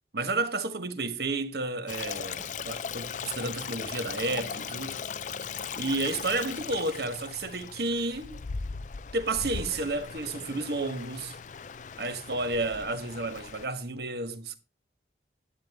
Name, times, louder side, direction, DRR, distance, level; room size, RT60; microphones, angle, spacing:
voice 1, 0.1-5.0 5.8-8.4 9.1-11.3 12.0-14.6, right 2 dB, 55° right, 1.2 m, -31 dB
Stream, 1.9-13.7, left 6 dB, 40° left, 0.4 m, -38 dB
11.5 x 8.8 x 3.5 m
head